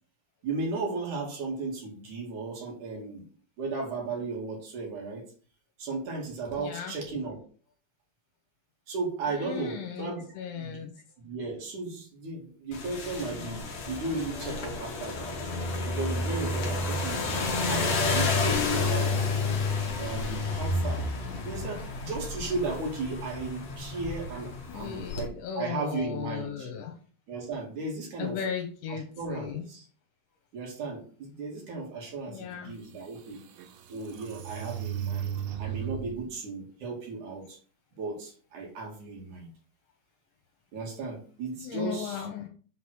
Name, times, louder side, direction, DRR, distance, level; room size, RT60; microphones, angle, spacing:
voice 1, 0.4-3.2 3.6-5.2 5.8-7.4 8.9-10.3 10.5-10.9 11.2-15.3 15.9-17.2 17.6-19.6 20.0-21.1 21.4-26.7 27.3-28.4 28.9-29.9 30.5-33.4 33.9-37.6 38.0-39.5 40.7-42.2, right 3 dB, 50° right, -1 dB, 3.0 m, -35 dB
voice 2, 6.5-7.0 9.3-10.9 17.1-18.0 21.2-21.8 24.7-26.9 28.2-29.7 32.3-32.7 41.6-42.5, left 8 dB, 75° left, 1 dB, 3.3 m, -37 dB
sound 1, 12.7-25.3, left 3 dB, 55° left, 2.1 m, -30 dB
sound 2, 32.5-32.6 33.1-36.3, right 10 dB, 85° right, 2.3 m, -36 dB
8.1 x 4.1 x 6.2 m, 0.41 s
omnidirectional pair, 5.8 m